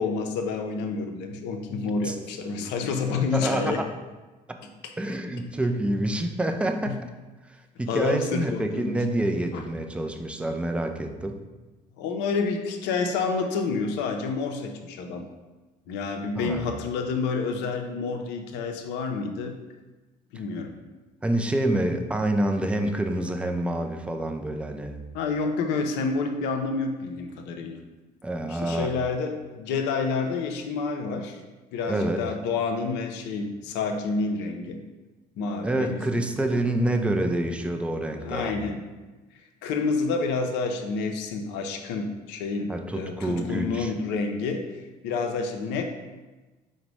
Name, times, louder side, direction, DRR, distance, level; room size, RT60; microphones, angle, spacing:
voice 1, 0.0-3.8 4.8-4.9 6.8-6.9 7.9-9.0 9.5-9.6 12.0-15.3 15.9-19.5 20.3-20.8 25.1-27.8 28.5-31.4 31.7-34.8 35.4-36.6 38.2-38.8 39.6-44.6 45.0-45.8, left 4 dB, 55° left, 5 dB, 0.5 m, -29 dB
voice 2, 3.1-3.9 4.5-4.6 5.0-7.0 7.8-11.4 16.4-16.7 21.2-25.0 28.2-28.9 31.9-32.2 35.6-38.5 42.7-43.9, right 1 dB, 5° right, 5 dB, 0.4 m, -27 dB
4.8 x 2.1 x 4.7 m, 1.2 s
figure-of-eight pair, 55°, 21 cm